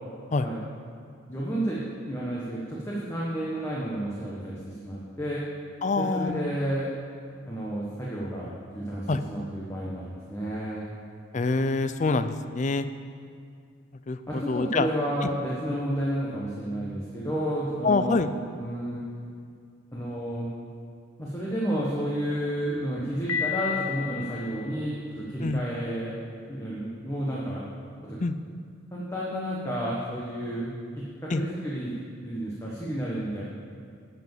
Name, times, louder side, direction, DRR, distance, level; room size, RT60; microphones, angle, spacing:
voice 1, 1.3-5.4 6.0-6.9 7.5-10.9 14.3-18.2 18.6-19.0 19.9-20.5 21.2-26.1 26.5-27.6 28.0-28.2 28.9-31.9 32.2-33.4, right 1 dB, 15° left, -6 dB, 1.2 m, -31 dB
voice 2, 5.8-6.5 9.1-9.2 11.3-12.9 14.1-14.9 17.8-18.3 25.4-25.6 28.2-28.3 31.3-31.4, left 3 dB, 35° left, 11 dB, 0.4 m, -25 dB
Piano, 23.3-25.2, left 9 dB, 90° left, 1.0 m, -32 dB
11.0 x 6.0 x 7.2 m, 2.3 s
head